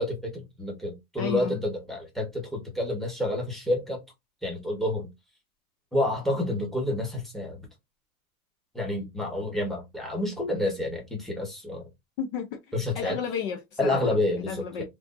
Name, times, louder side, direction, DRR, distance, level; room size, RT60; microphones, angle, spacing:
voice 1, 0.0-4.0 4.4-5.1 5.9-7.6 8.7-11.8 12.7-13.2 13.8-14.8, left 1 dB, ahead, 1.0 m, -29 dB
voice 2, 1.2-1.6 12.2-12.6 12.9-14.1 14.4-14.8, left 7 dB, 40° left, 0.5 m, -32 dB
3.4 x 2.6 x 2.5 m
supercardioid pair, 140°, 43 cm